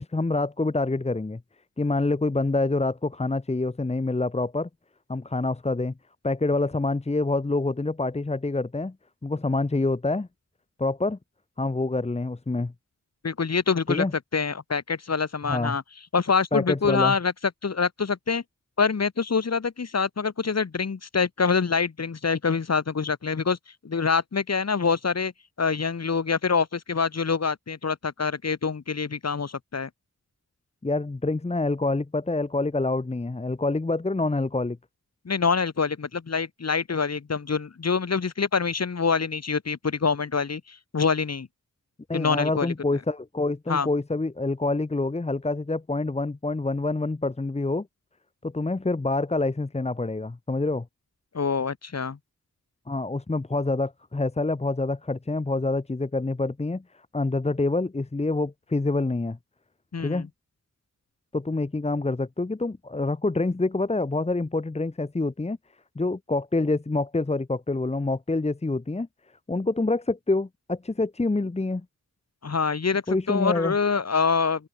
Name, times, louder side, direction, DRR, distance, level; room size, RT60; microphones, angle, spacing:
voice 1, 0.0-1.4 1.8-4.7 5.1-5.9 6.2-8.9 9.2-10.3 10.8-11.2 11.6-12.7 13.9-14.1 15.4-15.8 16.5-17.1 30.8-34.8 42.1-47.9 48.4-50.8 52.9-56.8 57.1-59.4 60.0-60.3 61.3-65.6 65.9-69.1 69.5-71.8 73.1-73.7, left 2 dB, 20° left, 1.3 m, -26 dB
voice 2, 13.2-14.1 14.3-15.8 16.1-17.3 17.6-18.4 18.8-23.6 23.8-25.3 25.6-29.9 35.3-41.5 42.1-42.7 43.7-43.9 51.3-52.2 59.9-60.3 72.4-74.7, left 5 dB, 55° left, 5.5 m, -25 dB
open air
wide cardioid pair, 120°, 31 cm